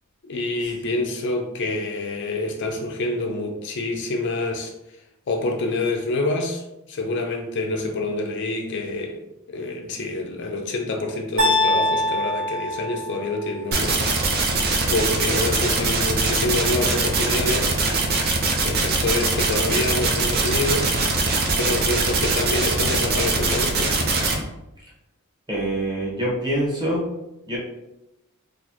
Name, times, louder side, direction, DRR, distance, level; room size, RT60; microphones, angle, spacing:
voice 1, 0.2-4.7 5.3-14.5 14.9-17.7 18.6-20.9 21.6-24.0, left 2 dB, 55° left, 0.5 m, -27 dB
sound 1, 11.4-13.5, left 1 dB, 60° right, 1.5 m, -23 dB
sound 2, 13.7-24.4, right 3 dB, 45° right, 0.6 m, -22 dB
voice 2, 25.5-27.0 27.5-27.6, right 1 dB, 20° right, 1.1 m, -25 dB
4.1 x 2.5 x 2.8 m
head